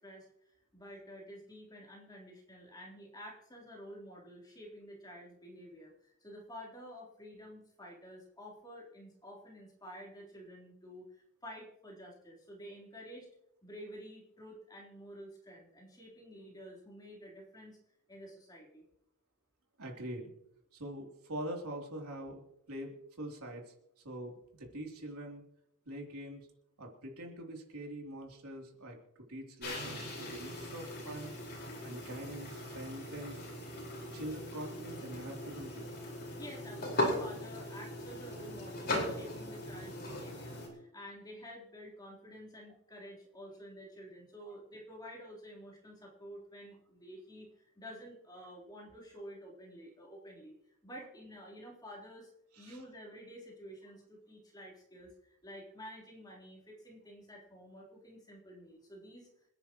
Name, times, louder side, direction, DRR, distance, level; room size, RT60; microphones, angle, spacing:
voice 1, 0.0-13.3 13.6-17.8 18.1-18.8 36.3-47.5 47.8-50.6 50.8-52.3 52.6-59.3, equal, 20° left, -3 dB, 3.7 m, -50 dB
voice 2, 19.8-20.3 20.7-22.4 22.7-23.7 24.0-25.4 25.9-26.5 26.8-31.3 31.8-33.4 34.1-35.9 44.4-44.5 52.5-52.8, right 1 dB, 85° right, 0 dB, 3.3 m, -44 dB
sound 1, 29.6-40.7, left 1 dB, 50° left, 4.8 m, -39 dB
27.0 x 10.0 x 3.1 m, 0.80 s
head